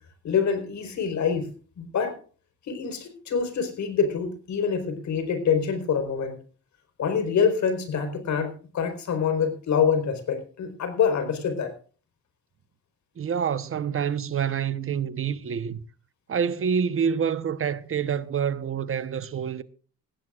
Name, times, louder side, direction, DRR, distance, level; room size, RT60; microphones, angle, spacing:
voice 1, 0.2-1.5 1.8-2.2 2.7-6.3 7.0-11.7, left 6 dB, 65° left, 4.4 m, -25 dB
voice 2, 13.2-15.8 16.3-19.6, right 7 dB, 45° right, 1.0 m, -27 dB
19.0 x 16.0 x 2.5 m
cardioid pair, 90°, 30 cm